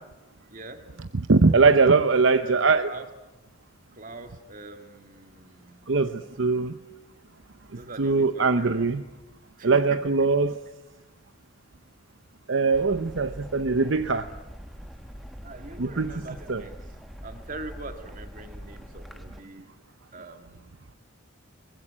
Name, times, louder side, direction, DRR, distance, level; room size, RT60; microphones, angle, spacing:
voice 1, 0.5-0.9 2.3-3.1 3.9-5.9 7.7-8.9 9.6-10.1 15.4-16.9 17.2-19.7 20.1-21.0, right 2 dB, 40° right, 7 dB, 2.1 m, -43 dB
voice 2, 1.3-2.9 5.9-6.7 8.0-9.0 9.6-10.6 12.5-14.3 15.8-16.1 16.5-16.6, right 4 dB, 65° right, 10 dB, 0.8 m, -21 dB
sound 1, 12.7-19.4, equal, ahead, 1.2 m, -43 dB
23.5 x 20.5 x 9.9 m, 1.1 s
head